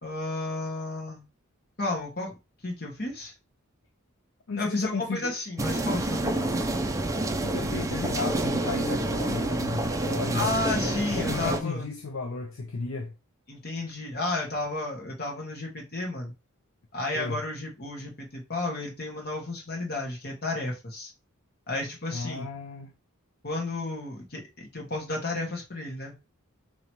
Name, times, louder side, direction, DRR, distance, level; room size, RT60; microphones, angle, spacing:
voice 1, 0.0-1.2 1.8-2.3 2.6-3.3 4.6-6.6 10.3-11.9 13.5-16.3 16.9-21.1 21.7-22.4 23.4-26.2, left 2 dB, 45° left, 1.5 m, -32 dB
voice 2, 4.5-5.3 7.4-13.1 17.1-17.4 22.1-22.9, left 4 dB, 70° left, 0.5 m, -34 dB
sound 1, 5.6-11.6, right 2 dB, 15° right, 0.4 m, -28 dB
3.0 x 2.9 x 4.5 m
head